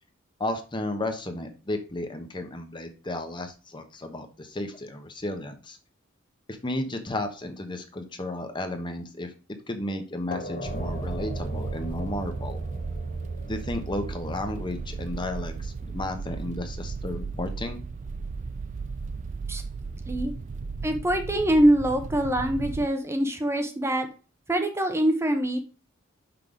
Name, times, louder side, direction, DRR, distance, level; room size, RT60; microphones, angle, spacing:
voice 1, 0.4-5.8 6.6-9.3 9.7-12.6 13.5-17.8, left 1 dB, 25° left, 6 dB, 1.0 m, -33 dB
sound 1, 10.3-15.6, left 1 dB, 45° left, 1.2 m, -40 dB
sound 2, 10.6-22.9, right 4 dB, 35° right, 0.3 m, -35 dB
voice 2, 20.8-24.1 24.5-25.6, right 1 dB, 15° right, 6 dB, 0.8 m, -24 dB
6.0 x 5.3 x 5.0 m, 0.34 s
head